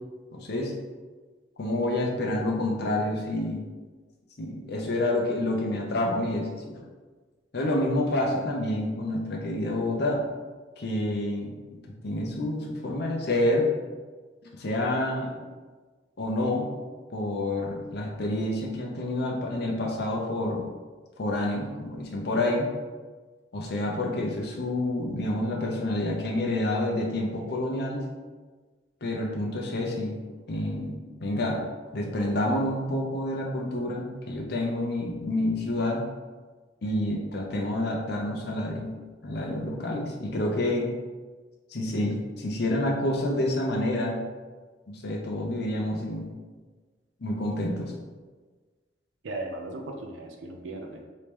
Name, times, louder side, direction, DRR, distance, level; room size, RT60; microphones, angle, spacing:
voice 1, 0.3-0.7 1.6-3.7 4.4-6.8 7.5-10.2 10.8-11.5 12.0-13.7 14.6-15.4 16.2-16.7 17.1-20.6 21.2-22.7 23.5-28.0 29.0-30.2 30.5-31.6 31.9-36.0 36.8-38.9 39.2-40.9 41.7-44.2 44.9-46.3 47.2-47.9, left 1 dB, 60° left, -1 dB, 0.6 m, -28 dB
voice 2, 49.2-51.0, right 2 dB, 85° right, 3 dB, 0.4 m, -37 dB
3.1 x 2.9 x 3.4 m, 1.4 s
head